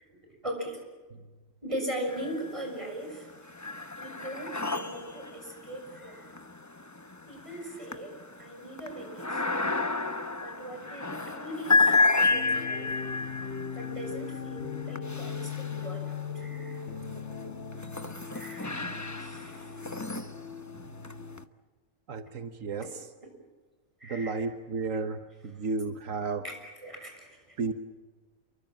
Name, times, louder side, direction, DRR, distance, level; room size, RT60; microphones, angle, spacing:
voice 1, 0.4-0.8 1.6-3.3 4.0-6.3 7.3-9.9 10.4-12.9 13.7-16.8 18.3-18.7 19.2-19.7 22.8-22.9 24.0-24.5 26.4-27.7, right 1 dB, 25° right, 3 dB, 6.7 m, -40 dB
sound 1, 2.1-2.8 3.1-16.3 16.9-21.4, left 3 dB, 15° left, 0.9 m, -31 dB
sound 2, 12.3-21.4, left 7 dB, 60° left, 1.7 m, -39 dB
voice 2, 22.1-22.8 24.1-25.2 25.6-26.4 27.6-27.7, right 4 dB, 85° right, 8 dB, 1.6 m, -32 dB
29.0 x 23.5 x 7.4 m, 1.3 s
omnidirectional pair, 1.3 m